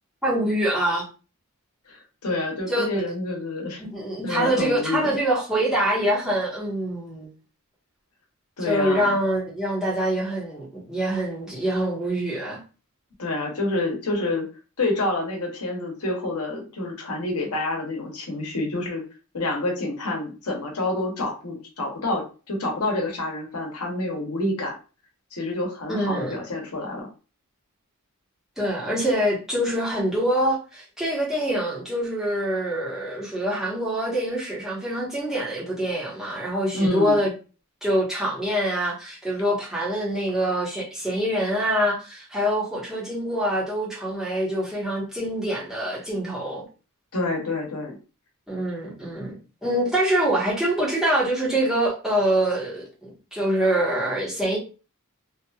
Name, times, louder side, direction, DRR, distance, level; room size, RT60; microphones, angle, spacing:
voice 1, 0.2-1.0 2.7-2.9 3.8-7.3 8.6-12.6 25.9-26.4 28.6-37.3 37.8-46.6 48.5-54.6, right 1 dB, ahead, 1.1 m, -25 dB
voice 2, 2.2-3.8 4.2-5.1 8.6-9.2 13.2-14.5 14.8-19.0 19.3-24.7 25.3-27.1 36.7-37.2 47.1-47.9, left 2 dB, 80° left, 1.0 m, -28 dB
2.8 x 2.5 x 2.3 m
head